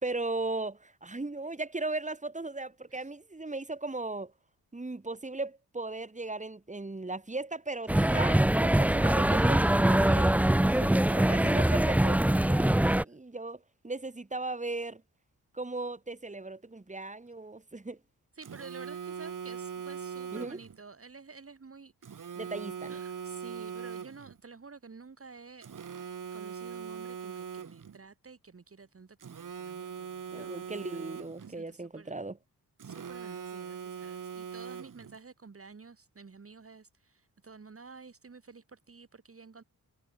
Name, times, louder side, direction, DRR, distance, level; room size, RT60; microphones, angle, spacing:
voice 1, 0.0-4.3 4.7-10.4 11.2-13.6 13.8-15.0 15.5-18.0 20.3-20.6 22.4-23.0 30.3-32.4, right 2 dB, 20° right, 3.4 m, -37 dB
sound 1, 7.9-13.0, right 1 dB, 5° right, 0.5 m, -23 dB
voice 2, 10.6-11.2 18.4-22.4 22.9-26.1 26.3-30.7 31.4-32.3 32.8-39.6, right 4 dB, 40° right, 2.8 m, -51 dB
Telephone, 18.4-20.8 22.0-24.4 25.6-28.0 29.2-31.6 32.8-35.2, right 7 dB, 60° right, 2.0 m, -41 dB
cardioid pair, 85°, 36 cm